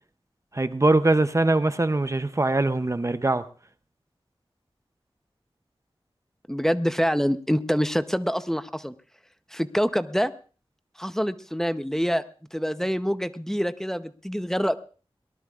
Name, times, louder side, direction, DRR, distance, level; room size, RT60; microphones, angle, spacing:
voice 1, 0.5-3.5, right 2 dB, 30° right, 0.6 m, -22 dB
voice 2, 6.5-8.9 9.5-10.3 11.0-12.2 12.5-14.8, equal, 5° left, 0.7 m, -26 dB
23.0 x 19.0 x 2.4 m
wide cardioid pair, 75°, 10 cm